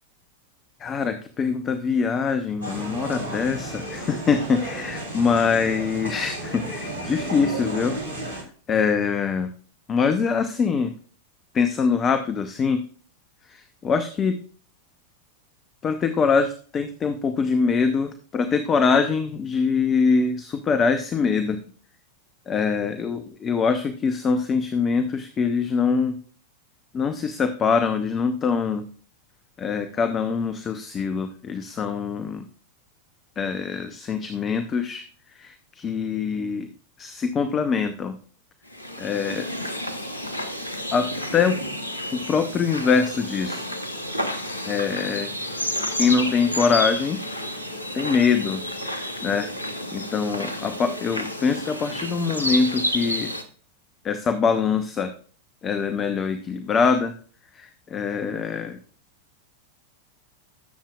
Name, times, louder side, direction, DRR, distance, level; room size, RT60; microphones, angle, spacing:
voice 1, 0.8-9.5 9.9-10.9 11.5-12.8 13.4-14.4 15.8-21.6 22.5-26.2 26.9-28.8 29.6-32.4 33.4-35.0 35.3-36.7 37.0-38.2 39.0-39.5 40.9-41.6 42.1-43.6 44.6-45.3 45.9-47.2 47.9-49.5 49.9-53.3 54.0-55.1 55.6-57.1 57.5-58.8, left 5 dB, 25° left, 9 dB, 0.8 m, -24 dB
sound 1, 2.6-8.4, right 1 dB, 75° right, 3.6 m, -33 dB
sound 2, 38.7-53.4, left 1 dB, 80° left, 1.1 m, -30 dB
18.5 x 7.4 x 2.4 m, 0.44 s
figure-of-eight pair, 90°, 0 cm